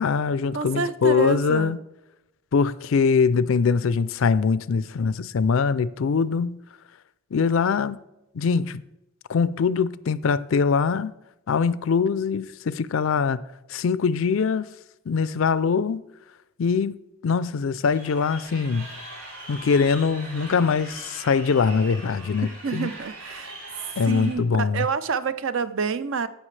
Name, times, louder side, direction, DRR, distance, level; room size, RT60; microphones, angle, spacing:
voice 1, 0.0-1.8 2.5-6.6 7.3-8.0 8.3-8.8 9.3-11.1 11.5-13.4 13.7-14.7 15.1-16.0 16.6-17.0 17.2-18.9 19.5-22.9 24.0-24.8, left 5 dB, 65° left, 0.4 m, -22 dB
voice 2, 0.5-1.8 22.6-26.3, right 5 dB, 60° right, 0.5 m, -28 dB
Crowd, 17.9-24.3, right 1 dB, 80° right, 3.5 m, -41 dB
16.0 x 5.8 x 3.2 m
head